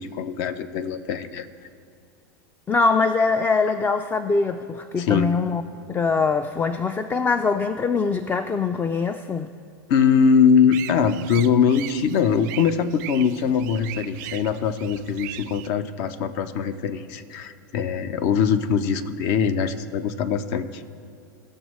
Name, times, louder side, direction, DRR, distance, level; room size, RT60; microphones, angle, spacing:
voice 1, 0.0-1.5 5.0-5.3 9.9-20.8, left 6 dB, 55° left, 12 dB, 0.6 m, -22 dB
voice 2, 2.7-5.6 5.9-9.5, left 4 dB, 15° left, 10 dB, 0.3 m, -23 dB
sound 1, 10.7-15.7, right 14 dB, 60° right, 0.4 m, -39 dB
16.5 x 6.4 x 3.1 m, 2.5 s
hypercardioid pair, 105°, 11 cm